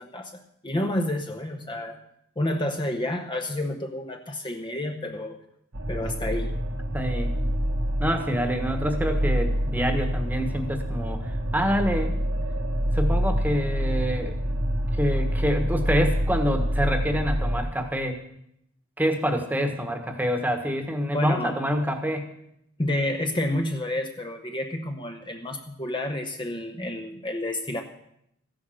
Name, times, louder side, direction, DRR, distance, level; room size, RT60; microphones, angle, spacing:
voice 1, 0.0-2.0 2.4-5.4 5.9-6.5 21.1-21.6 22.8-27.8, left 1 dB, 25° left, 3 dB, 0.9 m, -29 dB
sound 1, 5.7-17.6, equal, 85° right, 1.5 m, -27 dB
voice 2, 6.9-7.3 8.0-12.2 12.9-14.4 15.0-18.2 19.0-22.3, equal, 10° right, 6 dB, 1.4 m, -26 dB
14.5 x 10.0 x 6.4 m, 0.76 s
head